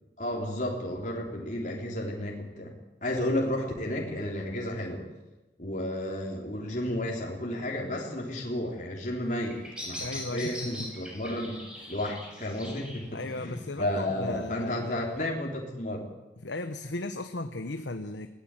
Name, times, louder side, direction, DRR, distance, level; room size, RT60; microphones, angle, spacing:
voice 1, 0.2-5.1 5.6-11.6 11.9-16.0, left 1 dB, 40° left, -1 dB, 3.5 m, -32 dB
Bird vocalization bird call bird song, 9.2-15.2, left 1 dB, 5° right, 6.8 m, -43 dB
voice 2, 10.0-10.9 11.8-11.9 13.1-14.9 16.4-18.3, left 2 dB, 80° left, 8 dB, 1.1 m, -36 dB
19.5 x 17.5 x 9.1 m, 1.0 s
head